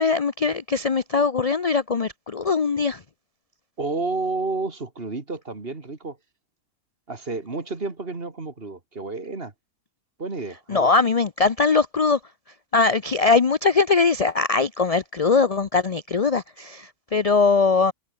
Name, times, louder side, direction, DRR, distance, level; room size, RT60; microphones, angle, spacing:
voice 1, 0.0-3.0 10.7-12.2 12.7-17.9, left 4 dB, 45° left, 0.5 m, -21 dB
voice 2, 3.8-6.2 7.1-9.5 10.2-10.9, right 3 dB, 40° right, 2.6 m, -30 dB
omnidirectional pair, 1.6 m